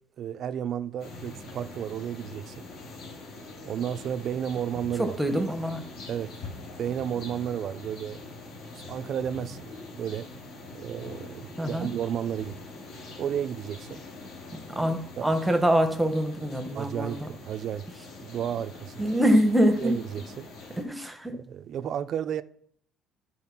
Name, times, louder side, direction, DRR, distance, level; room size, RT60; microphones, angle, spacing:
voice 1, 0.2-2.7 3.6-5.1 6.1-6.3 6.8-8.2 8.8-10.3 10.7-12.6 13.2-14.0 15.2-15.3 16.7-17.9 18.2-19.0 19.8-20.5 21.3-22.4, right 9 dB, 45° right, 0.4 m, -32 dB
sound 1, 1.0-20.8, left 3 dB, 60° left, 2.4 m, -44 dB
voice 2, 5.0-5.8 11.6-11.9 14.7-17.3 19.0-20.0 20.8-21.3, equal, 5° right, 0.9 m, -24 dB
11.5 x 4.2 x 5.9 m
cardioid pair, 165°, 0 cm